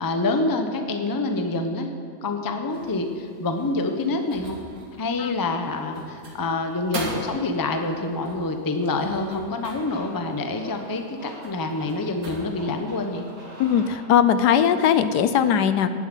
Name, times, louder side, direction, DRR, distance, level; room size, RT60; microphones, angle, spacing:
voice 1, 0.0-1.9 2.2-4.6 5.0-13.2, left 2 dB, 20° left, 5 dB, 0.5 m, -27 dB
sound 1, 2.7-13.9, right 2 dB, 60° right, 2.3 m, -41 dB
sound 2, 9.8-14.6, right 1 dB, 75° right, 3.8 m, -45 dB
voice 2, 13.6-16.0, left 8 dB, 75° left, 11 dB, 1.2 m, -19 dB
11.0 x 7.4 x 9.1 m, 2.2 s
omnidirectional pair, 1.8 m